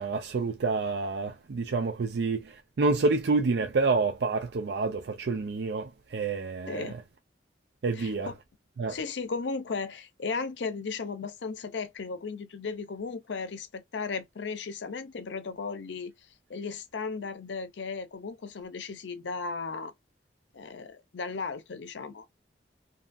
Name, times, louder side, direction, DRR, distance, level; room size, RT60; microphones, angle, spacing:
voice 1, 0.0-7.0 7.8-8.3 8.8-8.9, right 3 dB, 75° right, 0.4 m, -28 dB
voice 2, 6.7-7.0 7.9-8.3 8.9-16.1 16.5-19.9 20.5-22.3, left 4 dB, 85° left, 0.6 m, -35 dB
2.7 x 2.5 x 2.3 m
head